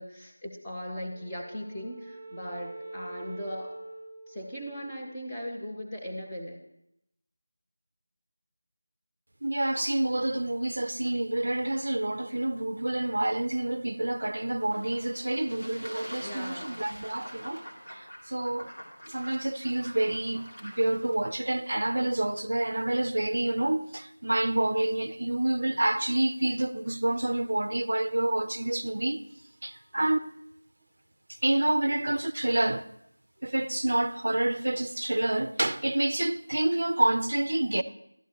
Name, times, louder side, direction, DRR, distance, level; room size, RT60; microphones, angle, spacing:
voice 1, 0.0-3.8 4.3-6.6 16.1-16.9, equal, 5° left, 0.6 m, -38 dB
Wind instrument woodwind instrument, 1.0-5.5, right 2 dB, 80° left, 2.3 m, -45 dB
voice 2, 9.4-18.7 19.1-29.2 29.6-30.3 31.4-32.9 33.4-37.8, right 1 dB, 55° right, 0.4 m, -28 dB
Fowl / Bird / Water, 14.6-21.2, equal, 50° left, 2.3 m, -45 dB
12.0 x 10.5 x 2.9 m
figure-of-eight pair, 180°, 0 cm